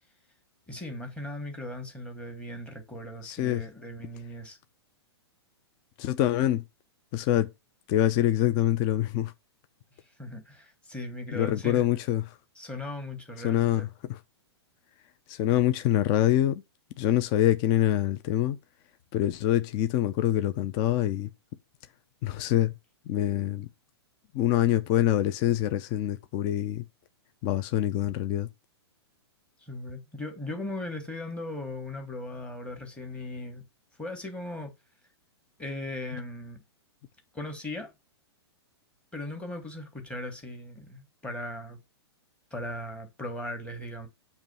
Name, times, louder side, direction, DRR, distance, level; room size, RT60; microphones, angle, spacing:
voice 1, 0.7-4.6 10.2-11.9 12.6-13.9 29.6-33.6 34.0-34.7 35.6-36.6 37.3-37.9 39.1-41.8 42.5-44.1, left 1 dB, 10° left, 1.4 m, -38 dB
voice 2, 3.2-3.6 6.0-6.6 7.1-7.5 7.9-9.3 11.3-12.2 13.4-14.2 15.3-16.6 17.0-18.6 19.1-21.3 22.2-22.7 23.1-23.7 24.3-26.8 27.4-28.5, left 13 dB, 30° left, 0.5 m, -25 dB
7.2 x 3.1 x 5.4 m
hypercardioid pair, 140°, 14 cm